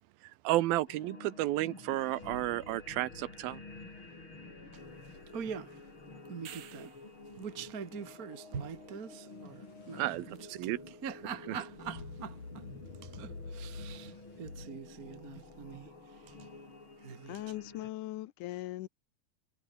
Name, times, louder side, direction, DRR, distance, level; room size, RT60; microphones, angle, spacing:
voice 1, 0.4-3.6 10.0-10.3 10.5-10.8, right 16 dB, 75° right, 2.6 m, -32 dB
sound 1, 0.9-17.9, left 3 dB, 30° left, 6.9 m, -50 dB
sound 2, 2.0-6.0 9.3-14.7, left 3 dB, 50° left, 9.6 m, -50 dB
voice 2, 4.7-5.8 6.3-6.9 7.3-12.7 13.0-16.5 17.0-17.4, right 6 dB, 35° right, 1.5 m, -44 dB
sound 3, 6.3-7.2 11.9-12.0, right 11 dB, 60° right, 2.4 m, -50 dB
voice 3, 17.3-18.9, left 15 dB, 75° left, 2.0 m, -40 dB
omnidirectional pair, 4.4 m